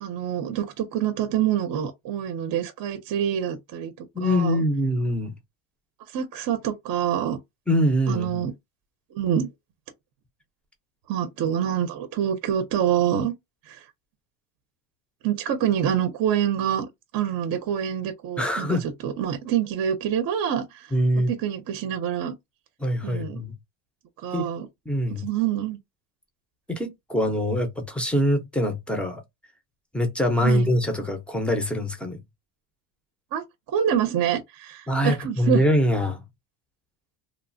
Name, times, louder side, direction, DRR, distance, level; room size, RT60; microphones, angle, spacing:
voice 1, 0.0-4.6 6.1-7.4 8.1-8.5 9.1-9.5 11.1-13.3 13.7-13.8 15.2-16.9 17.1-22.3 23.0-23.4 24.2-24.7 25.2-25.8 30.4-30.7 33.3-33.4 33.7-35.6, right 9 dB, 45° right, 0.6 m, -26 dB
voice 2, 4.1-5.3 7.7-8.4 18.4-18.9 20.9-21.3 22.8-23.5 24.3-24.5 24.9-25.3 26.7-29.2 29.9-32.2 34.9-36.2, equal, ahead, 0.5 m, -24 dB
3.1 x 2.1 x 2.5 m
cardioid pair, 135°, 50 cm